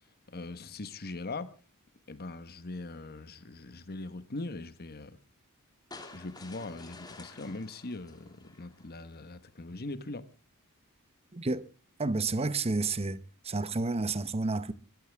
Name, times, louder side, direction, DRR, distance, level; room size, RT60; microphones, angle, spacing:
voice 1, 0.3-1.5 2.1-5.2 6.1-10.3, left 2 dB, 45° left, 1.2 m, -41 dB
sound 1, 5.9-9.2, left 3 dB, 20° left, 2.4 m, -50 dB
voice 2, 11.3-11.6 12.0-14.7, right 3 dB, 30° right, 0.8 m, -30 dB
23.0 x 14.0 x 3.5 m
head